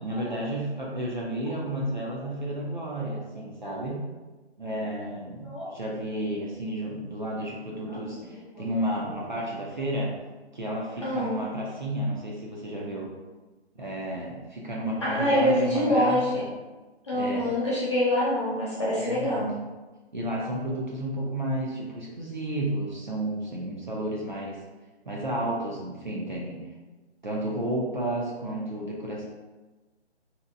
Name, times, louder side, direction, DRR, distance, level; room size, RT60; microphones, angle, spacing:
voice 1, 0.0-4.0 4.6-10.1 10.5-13.1 13.8-16.5 17.1-17.5 19.0-19.4 20.1-24.6 25.0-26.6 27.2-29.2, right 1 dB, 45° right, -3 dB, 0.4 m, -32 dB
voice 2, 11.0-11.4 15.0-16.4 17.0-19.5, left 1 dB, 25° left, -9 dB, 0.7 m, -25 dB
2.7 x 2.0 x 2.4 m, 1.2 s
figure-of-eight pair, 150°, 34 cm